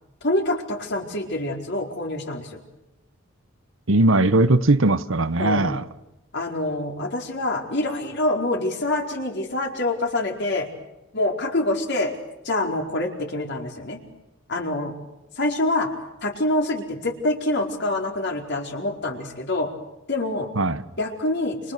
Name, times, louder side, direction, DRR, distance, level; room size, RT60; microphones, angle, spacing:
voice 1, 0.2-2.6 5.4-5.7 6.3-10.7 11.1-12.1 12.4-14.0 14.5-14.9 15.4-15.9 16.2-19.7 20.1-20.5 21.0-21.7, left 2 dB, 55° left, 4.5 m, -26 dB
voice 2, 3.9-5.8 20.6-20.8, right 2 dB, 70° right, 1.2 m, -19 dB
30.0 x 27.5 x 6.8 m
head